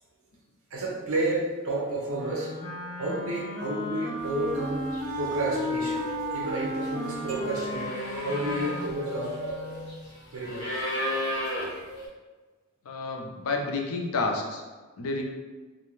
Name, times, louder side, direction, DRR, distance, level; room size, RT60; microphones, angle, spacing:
voice 1, 0.7-2.5 3.0-6.0 6.3-9.4 10.3-10.6, right 1 dB, 70° right, -2 dB, 0.6 m, -31 dB
Wind instrument woodwind instrument, 2.1-10.0, left 1 dB, 20° left, 0.4 m, -35 dB
sound 1, 4.5-4.7 4.9-12.1, equal, 55° left, 0.9 m, -35 dB
sound 2, 7.3-9.2, right 4 dB, 20° right, 1.3 m, -42 dB
voice 2, 12.9-14.6 15.0-15.2, left 3 dB, 80° left, 1 dB, 0.4 m, -30 dB
2.5 x 2.1 x 3.1 m, 1.3 s
head